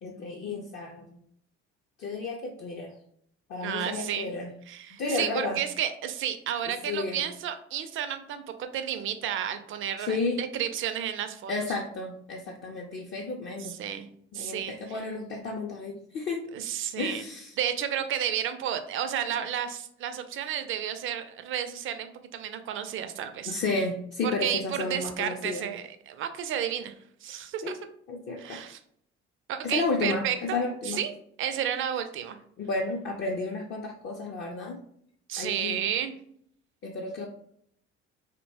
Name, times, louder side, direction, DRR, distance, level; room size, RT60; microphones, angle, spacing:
voice 1, 0.0-1.2 2.0-3.0 3.5-4.5 4.9-5.6 6.6-7.2 10.0-10.4 11.5-13.8 14.3-16.4 17.0-17.6 23.5-25.7 27.6-27.8 28.1-28.6 29.6-31.0 32.6-34.8 35.4-35.9 36.8-37.3, left 3 dB, 35° left, 0 dB, 0.4 m, -32 dB
voice 2, 3.6-4.3 4.7-11.5 13.6-14.1 14.3-15.0 16.5-17.2 17.6-23.5 24.2-26.9 27.2-27.8 28.4-28.8 29.5-30.6 30.8-31.1 31.4-32.4 35.3-36.2, right 9 dB, 35° right, 9 dB, 0.4 m, -32 dB
2.7 x 2.1 x 2.7 m, 0.68 s
hypercardioid pair, 55°, 35 cm